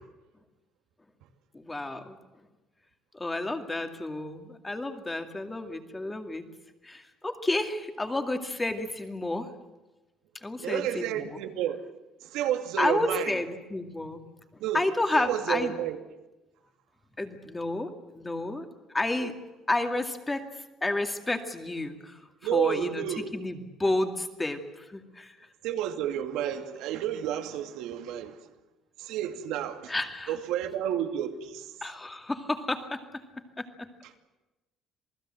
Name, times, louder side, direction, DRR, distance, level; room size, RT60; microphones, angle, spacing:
voice 1, 1.5-2.2 3.1-6.4 6.8-9.5 10.4-11.4 12.8-14.2 14.7-15.7 17.2-19.3 19.7-20.4 20.8-22.2 22.5-23.0 23.3-25.4 29.9-30.3 31.8-33.0 33.6-33.9, left 2 dB, 10° left, 2.3 m, -31 dB
voice 2, 10.6-11.9 12.2-13.4 14.6-14.9 15.2-16.0 22.4-23.3 25.6-28.5 29.0-29.9 30.3-31.7, right 11 dB, 80° right, 2.5 m, -31 dB
28.0 x 19.5 x 7.8 m
cardioid pair, 145°, 0 cm